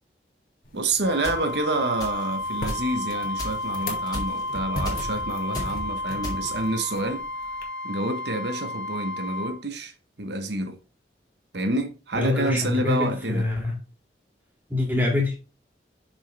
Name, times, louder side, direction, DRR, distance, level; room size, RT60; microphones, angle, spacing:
sound 1, 0.6-7.6, left 1 dB, 55° left, 1.9 m, -38 dB
voice 1, 0.7-7.2 7.8-9.9 10.2-10.8 11.5-13.5, right 2 dB, 75° right, 1.2 m, -28 dB
Wind instrument woodwind instrument, 1.0-9.6, left 1 dB, 80° left, 0.9 m, -32 dB
sound 2, 1.2-1.4 2.0-2.3 2.7-2.8 3.4-3.7 4.1-4.5 4.8-5.1 5.5-5.8 6.2-6.6, left 1 dB, 20° left, 2.3 m, -34 dB
voice 2, 12.1-13.7 14.7-15.4, left 2 dB, 10° right, 2.2 m, -25 dB
6.3 x 6.3 x 3.4 m
head